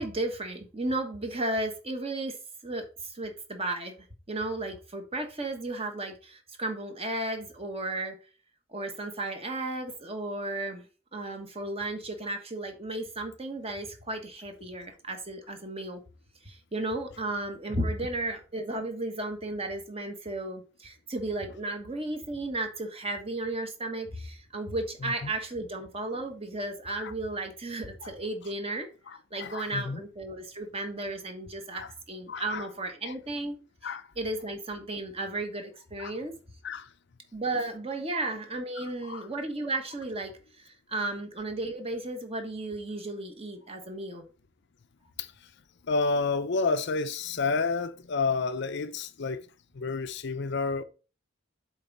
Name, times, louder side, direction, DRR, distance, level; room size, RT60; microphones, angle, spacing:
voice 1, 0.0-2.4 2.6-8.2 8.7-10.9 11.1-16.0 16.4-28.9 29.3-33.6 34.2-36.3 37.3-44.3, right 2 dB, 30° right, 1.3 m, -34 dB
voice 2, 29.1-30.0 31.7-31.9 32.3-32.6 33.1-33.2 33.8-34.1 36.0-36.1 36.6-36.9 38.8-39.3 45.2-45.3 45.8-49.5 49.7-50.8, left 4 dB, 55° left, 0.6 m, -30 dB
7.9 x 3.5 x 5.3 m
head